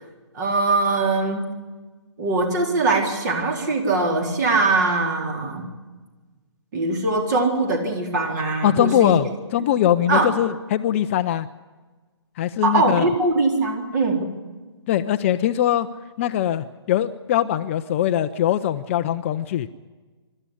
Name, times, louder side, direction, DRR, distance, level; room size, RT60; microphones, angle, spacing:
voice 1, 0.3-1.4 2.2-5.6 6.7-9.2 10.1-10.3 12.6-14.3, right 3 dB, 40° right, 4 dB, 4.1 m, -21 dB
voice 2, 8.6-11.5 12.4-13.0 14.9-15.9 16.2-19.7, left 11 dB, 30° left, 11 dB, 0.6 m, -21 dB
25.0 x 13.0 x 10.0 m, 1.3 s
figure-of-eight pair, 140°, 15 cm